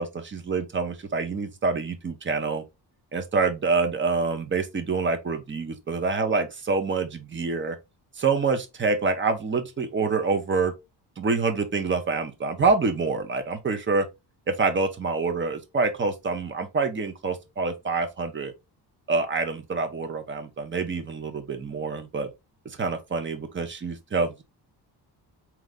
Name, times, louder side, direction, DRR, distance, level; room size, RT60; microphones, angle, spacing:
voice 1, 0.0-2.6 3.1-7.8 8.2-10.7 11.2-14.1 14.5-18.5 19.1-22.3 22.6-24.4, right 4 dB, 30° right, 0.9 m, -26 dB
3.9 x 3.0 x 3.6 m
cardioid pair, 120°, 41 cm